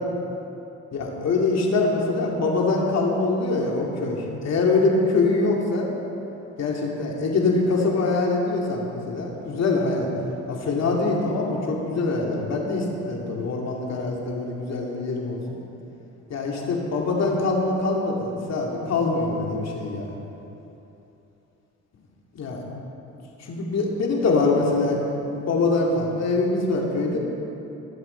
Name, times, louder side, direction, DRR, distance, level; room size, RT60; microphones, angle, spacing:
voice 1, 0.9-5.9 6.6-10.1 10.5-15.4 16.3-20.1 22.3-22.6 23.4-27.2, left 3 dB, 60° left, -1 dB, 2.5 m, -24 dB
21.5 x 7.7 x 4.4 m, 2.9 s
cardioid pair, 90°, 30 cm